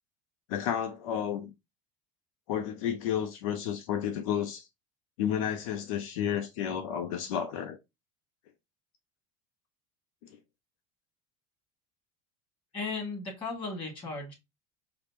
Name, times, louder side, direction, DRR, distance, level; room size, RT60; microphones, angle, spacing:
voice 1, 0.5-1.5 2.5-4.7 5.2-7.8, left 9 dB, 90° left, 0.5 m, -31 dB
voice 2, 12.7-14.3, left 3 dB, 30° left, 2.3 m, -36 dB
4.9 x 2.0 x 2.9 m
supercardioid pair, 125°, 17 cm